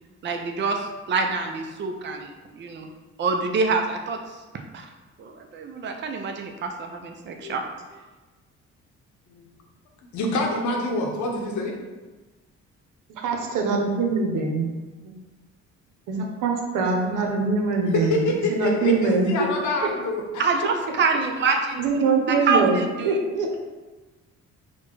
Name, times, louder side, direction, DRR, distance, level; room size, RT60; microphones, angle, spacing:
voice 1, 0.2-2.9 3.2-4.2 4.7-4.9 5.2-7.6 20.4-21.8 22.3-23.2, right 4 dB, 40° right, 3 dB, 0.5 m, -26 dB
voice 2, 10.1-11.8 17.9-20.2, left 2 dB, 75° left, 1 dB, 0.9 m, -26 dB
voice 3, 13.2-14.7 15.0-15.1 16.1-19.3 21.8-23.6, right 4 dB, 90° right, 2 dB, 0.8 m, -23 dB
4.3 x 2.2 x 4.5 m, 1.2 s
cardioid pair, 90°, 30 cm